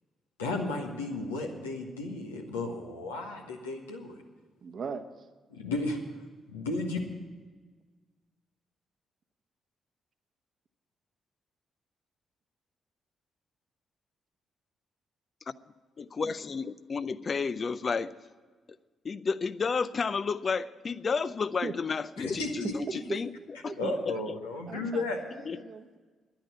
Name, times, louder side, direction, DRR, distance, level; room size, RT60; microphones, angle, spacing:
voice 1, 0.4-4.1 5.5-6.0 6.5-7.0 22.2-22.7 23.8-25.2, left 2 dB, 90° left, 1 dB, 1.4 m, -34 dB
voice 2, 4.6-5.3 21.6-21.7 23.1-23.2 23.6-24.0 24.7-26.0, right 5 dB, 55° right, 9 dB, 1.0 m, -39 dB
voice 3, 16.0-18.1 19.0-23.3 23.6-24.3 25.5-25.6, left 5 dB, 45° left, 15 dB, 0.5 m, -31 dB
10.5 x 10.0 x 9.2 m, 1.4 s
hypercardioid pair, 40°, 0 cm